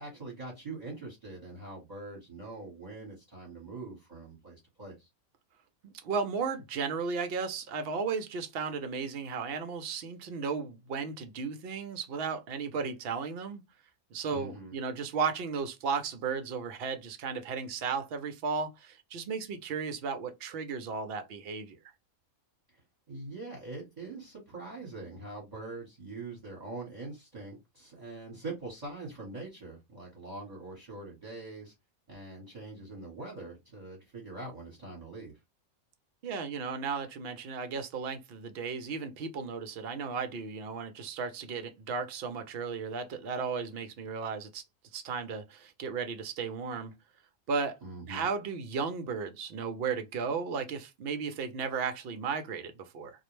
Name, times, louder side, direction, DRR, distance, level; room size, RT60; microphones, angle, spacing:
voice 1, 0.0-5.1 14.3-14.7 23.1-31.7 32.1-35.4 47.8-48.3, right 2 dB, 35° right, 1.1 m, -43 dB
voice 2, 5.8-13.6 14.1-21.8 36.2-44.6 44.9-46.9 47.5-47.8 48.1-53.1, right 5 dB, 60° right, 0.6 m, -35 dB
2.4 x 2.0 x 3.0 m
omnidirectional pair, 1.5 m